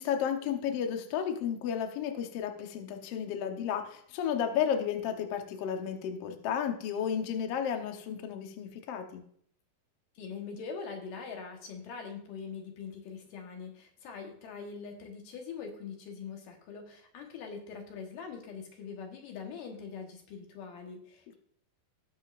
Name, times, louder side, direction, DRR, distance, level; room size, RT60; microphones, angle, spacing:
voice 1, 0.0-9.2, left 8 dB, 85° left, 5 dB, 1.3 m, -33 dB
voice 2, 10.2-21.4, left 5 dB, 65° left, 3 dB, 2.8 m, -43 dB
18.5 x 6.4 x 2.5 m, 0.62 s
omnidirectional pair, 4.3 m